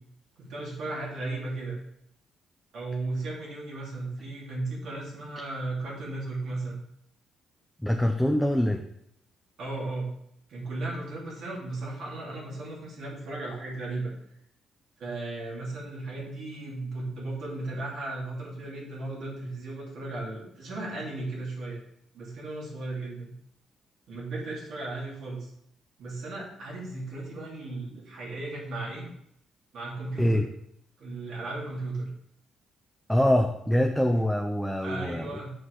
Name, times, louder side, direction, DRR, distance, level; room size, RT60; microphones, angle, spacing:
voice 1, 0.4-1.8 2.7-6.8 9.6-10.1 10.5-14.1 15.0-21.8 22.1-23.3 24.1-25.5 26.0-29.0 29.7-30.4 31.0-32.1 34.8-35.5, right 2 dB, 70° right, -4 dB, 2.5 m, -35 dB
voice 2, 7.8-8.8 30.2-30.5 33.1-35.3, equal, ahead, 4 dB, 0.5 m, -24 dB
6.3 x 4.6 x 3.8 m, 0.72 s
cardioid pair, 90°, 0 cm